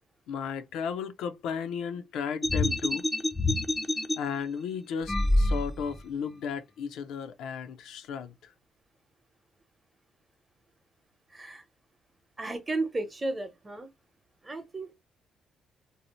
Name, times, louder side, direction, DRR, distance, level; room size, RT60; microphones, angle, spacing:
voice 1, 0.3-3.1 4.2-8.5, left 6 dB, 85° left, 0.5 m, -34 dB
sound 1, 2.4-4.2 5.0-6.0, left 1 dB, 15° left, 0.4 m, -26 dB
voice 2, 11.3-11.6 12.4-13.9 14.4-14.9, right 2 dB, 25° right, 0.8 m, -33 dB
2.7 x 2.0 x 2.9 m
cardioid pair, 90°, 0 cm